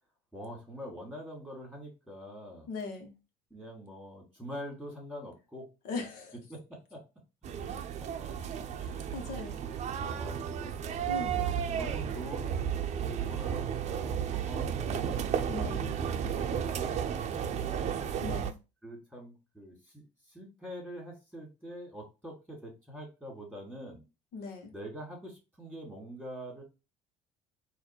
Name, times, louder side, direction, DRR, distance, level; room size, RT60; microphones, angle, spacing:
voice 1, 0.3-2.7 3.5-5.7 6.5-7.0 7.6-8.4 8.8-9.6 9.9-10.8 11.2-15.3 16.0-18.1 18.8-24.0 24.7-26.6, equal, 5° left, 2.1 m, -45 dB
voice 2, 2.7-3.1 5.8-6.3 8.8-9.6 11.1-11.4 15.5-15.9 18.2-18.5 24.3-24.7, left 3 dB, 75° left, 1.3 m, -39 dB
sound 1, 7.4-18.5, right 8 dB, 45° right, 0.6 m, -33 dB
4.1 x 2.6 x 4.3 m
cardioid pair, 115°, 15 cm